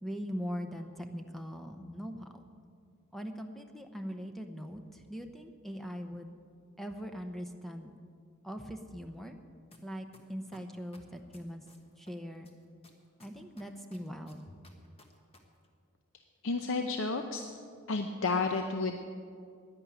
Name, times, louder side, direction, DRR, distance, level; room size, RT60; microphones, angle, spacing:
voice 1, 0.0-2.4 3.1-6.4 6.8-7.9 8.4-9.4 9.8-11.6 12.0-12.5 13.2-14.5, equal, ahead, 6 dB, 0.7 m, -41 dB
sound 1, 9.7-9.8 10.1-12.1 12.4-15.4 15.6-15.7, left 2 dB, 25° left, 1.3 m, -58 dB
voice 2, 16.4-17.5 17.9-19.0, left 3 dB, 60° left, 5 dB, 0.7 m, -31 dB
10.5 x 10.5 x 8.9 m, 2.3 s
head